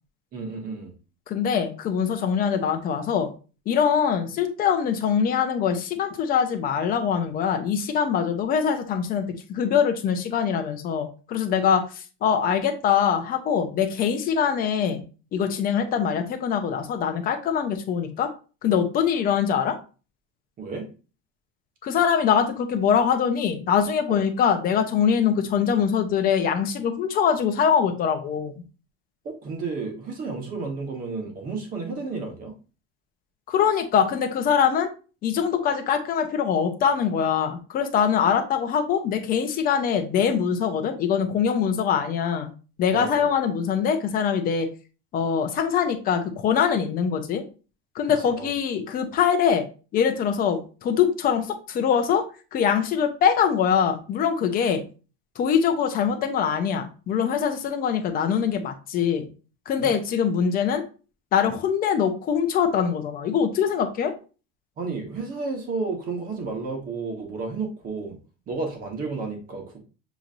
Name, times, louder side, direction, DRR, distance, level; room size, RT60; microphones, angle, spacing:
voice 1, 0.3-0.9 20.6-20.9 24.1-24.2 29.2-32.5 42.9-43.3 48.4-48.5 59.8-59.9 64.8-68.2 68.5-69.8, right 4 dB, 30° right, 2 dB, 1.2 m, -32 dB
voice 2, 1.3-3.3 3.7-9.2 9.5-15.0 15.3-18.3 18.6-19.8 21.8-28.6 33.5-34.9 35.2-42.5 42.8-44.7 45.1-47.4 47.9-49.7 49.9-52.3 52.5-54.8 55.4-59.3 59.7-60.8 61.3-64.1, left 7 dB, 30° left, 6 dB, 0.7 m, -23 dB
6.9 x 3.0 x 2.5 m, 0.35 s
cardioid pair, 175°, 29 cm